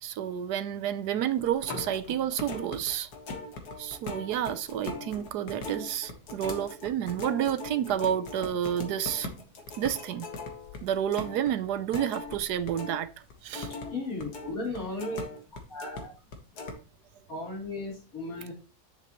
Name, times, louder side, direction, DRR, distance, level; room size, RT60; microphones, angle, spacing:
voice 1, 0.0-3.1 3.8-9.3 9.8-10.3 10.8-13.1 13.4-13.7, right 10 dB, 85° right, 1.3 m, -30 dB
sound 1, 1.4-13.0 13.3-16.0 16.3-16.7, left 3 dB, 80° left, 2.0 m, -40 dB
voice 2, 13.9-15.2 15.7-16.1 17.3-18.5, left 2 dB, 65° left, 4.3 m, -35 dB
9.8 x 7.3 x 3.0 m
omnidirectional pair, 1.7 m